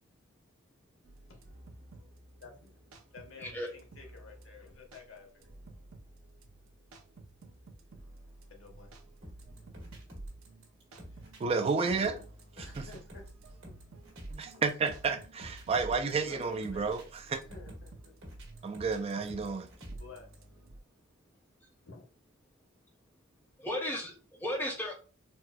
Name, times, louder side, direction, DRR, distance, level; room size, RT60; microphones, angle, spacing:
sound 1, 1.0-20.8, right 2 dB, 85° right, 0.6 m, -54 dB
voice 1, 2.4-5.4 8.5-9.1 11.1-11.3 11.8-12.2 12.6-13.3 14.3-14.6 16.1-16.9 17.3-18.1 19.9-20.3 21.8-22.0, left 4 dB, 65° left, 0.8 m, -52 dB
sound 2, 9.2-20.3, right 1 dB, 65° right, 1.4 m, -48 dB
voice 2, 11.4-12.2 12.8-12.9 14.3-17.4 18.6-19.7, right 4 dB, 30° right, 0.3 m, -31 dB
voice 3, 23.6-24.9, left 1 dB, 10° left, 0.7 m, -35 dB
4.2 x 2.1 x 2.2 m
head